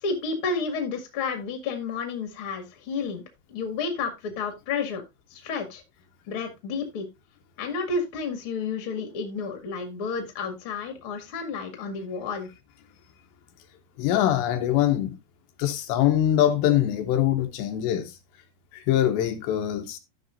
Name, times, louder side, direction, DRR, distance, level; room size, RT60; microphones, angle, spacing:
voice 1, 0.0-3.2 3.5-5.0 5.3-5.8 6.3-7.1 7.6-12.5, left 4 dB, 45° left, 2.0 m, -31 dB
voice 2, 14.0-15.2 15.6-18.1 18.7-20.0, left 11 dB, 90° left, 3.2 m, -23 dB
14.5 x 5.9 x 2.6 m
omnidirectional pair, 5.0 m